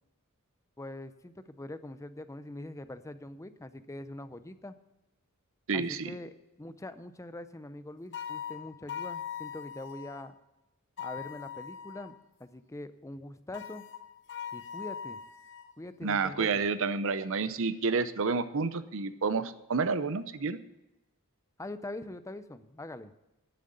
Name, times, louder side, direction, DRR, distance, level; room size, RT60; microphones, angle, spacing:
voice 1, 0.8-4.7 5.7-10.3 11.0-12.1 12.4-13.8 14.5-15.2 15.8-16.7 21.6-23.1, left 1 dB, 15° left, 12 dB, 0.5 m, -43 dB
voice 2, 5.7-6.1 16.0-20.6, right 4 dB, 65° right, 13 dB, 0.7 m, -29 dB
sound 1, 8.1-10.3 11.0-12.2 13.5-15.7, left 8 dB, 55° left, 0.9 m, -41 dB
10.5 x 7.6 x 8.9 m, 0.95 s
head